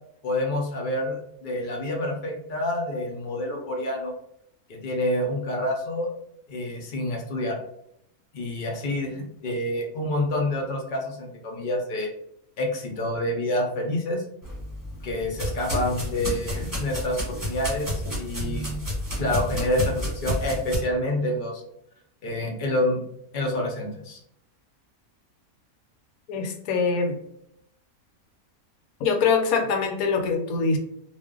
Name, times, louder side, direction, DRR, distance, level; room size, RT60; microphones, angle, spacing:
voice 1, 0.2-4.1 4.7-6.1 6.5-7.6 8.3-12.1 12.6-14.2 15.0-18.7 19.2-21.6 22.2-23.0 23.3-24.2, left 1 dB, 55° left, 0 dB, 0.5 m, -28 dB
sound 1, 14.4-20.8, equal, 15° right, 1.1 m, -30 dB
voice 2, 26.3-27.2 29.0-30.8, left 5 dB, 80° left, 5 dB, 1.0 m, -23 dB
2.5 x 2.1 x 3.6 m, 0.74 s
omnidirectional pair, 1.5 m